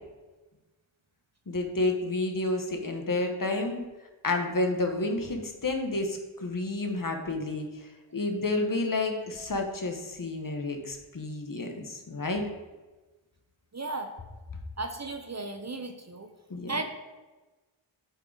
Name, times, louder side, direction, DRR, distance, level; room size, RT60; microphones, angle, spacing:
voice 1, 1.5-3.8 4.2-12.4 16.5-16.7, left 2 dB, 40° left, 4 dB, 1.0 m, -30 dB
voice 2, 13.7-14.1 14.8-16.3 16.7-16.8, right 2 dB, 35° right, 6 dB, 0.7 m, -35 dB
8.1 x 3.8 x 3.9 m, 1.2 s
cardioid pair, 40°, 48 cm